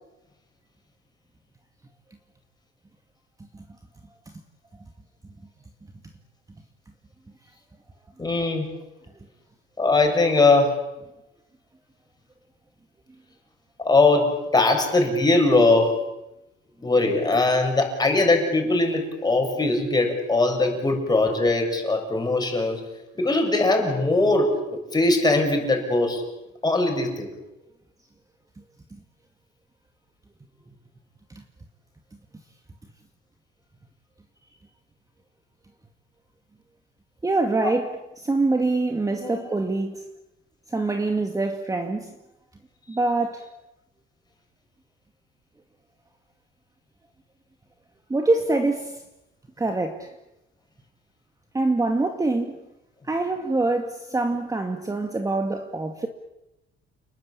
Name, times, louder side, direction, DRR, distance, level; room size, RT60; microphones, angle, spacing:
voice 1, 8.2-8.7 9.8-10.8 13.8-16.0 16.8-22.8 23.2-26.2 26.6-27.3 39.1-39.5, left 2 dB, 20° left, 7.3 m, -21 dB
voice 2, 37.2-40.0 40.7-42.1 42.9-43.5 48.1-49.0 49.6-50.1 51.5-52.6 53.1-56.1, right 2 dB, 15° right, 2.1 m, -25 dB
29.5 x 20.5 x 8.8 m
cardioid pair, 125°, 21 cm